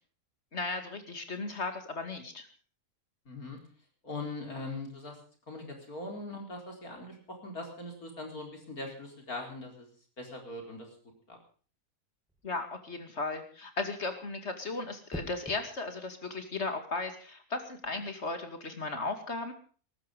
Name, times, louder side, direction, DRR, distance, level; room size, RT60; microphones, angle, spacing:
voice 1, 0.5-2.5 12.4-19.5, left 3 dB, 50° left, 7 dB, 2.7 m, -36 dB
voice 2, 3.3-3.6 4.0-5.2 5.5-7.2 7.4-9.9 10.2-10.9 11.3-11.4, left 2 dB, 80° left, 3 dB, 4.8 m, -41 dB
sound 1, 12.3-12.6 15.1-15.6 17.6-17.9, equal, ahead, 2.9 m, -43 dB
19.5 x 14.0 x 5.2 m, 0.40 s
omnidirectional pair, 1.5 m